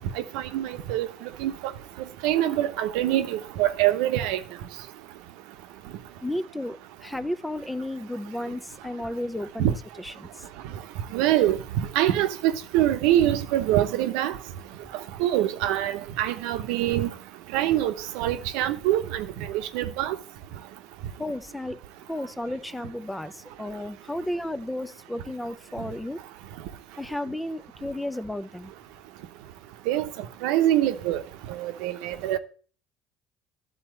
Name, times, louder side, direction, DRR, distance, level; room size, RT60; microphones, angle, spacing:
voice 1, 0.2-1.5 2.2-4.4 9.6-9.7 11.1-14.4 15.2-17.1 17.5-20.2 29.9-30.1 30.4-31.2 31.5-32.4, right 12 dB, 85° right, 0.8 m, -24 dB
voice 2, 6.2-9.7 10.0-10.4 21.2-21.8 22.1-26.2 27.0-28.7, left 1 dB, 5° left, 0.5 m, -33 dB
11.0 x 4.3 x 7.7 m
cardioid pair, 110°, 0 cm